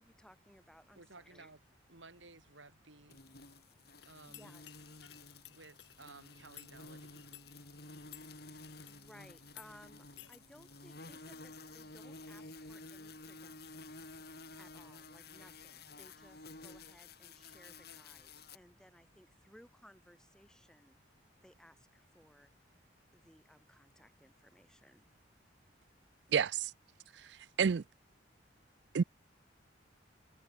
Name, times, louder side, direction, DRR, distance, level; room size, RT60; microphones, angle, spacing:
voice 1, 0.0-1.5 4.0-4.9 8.3-14.1 14.6-21.0 21.4-22.8 23.1-25.2, equal, 5° left, 4.1 m, -62 dB
voice 2, 0.9-1.6 1.9-3.2 4.0-4.6 5.5-7.3, right 3 dB, 80° right, 5.1 m, -56 dB
sound 1, 3.1-18.6, left 3 dB, 55° left, 6.5 m, -52 dB
sound 2, 4.0-9.1 9.5-9.7 10.2-10.4, left 13 dB, 70° left, 3.8 m, -57 dB
voice 3, 26.3-26.7 27.1-27.8 28.9-29.0, right 6 dB, 60° right, 0.4 m, -30 dB
head